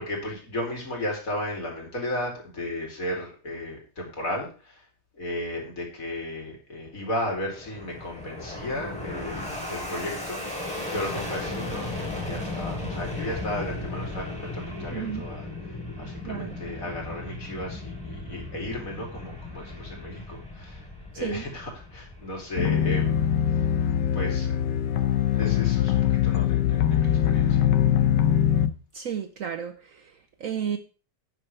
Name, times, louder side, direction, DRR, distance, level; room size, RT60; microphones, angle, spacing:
voice 1, 0.0-4.8 5.1-20.9 21.1-23.3 24.1-24.5 25.3-27.6, left 1 dB, 50° left, 3.4 m, -34 dB
Fixed-wing aircraft airplane, 7.0-23.6, left 2 dB, 5° left, 3.4 m, -36 dB
voice 2, 14.9-15.2 16.2-16.7 21.1-21.4 28.9-30.8, right 8 dB, 60° right, 1.0 m, -33 dB
sound 1, 22.6-28.7, left 10 dB, 80° left, 1.3 m, -22 dB
11.5 x 9.1 x 3.3 m
omnidirectional pair, 1.9 m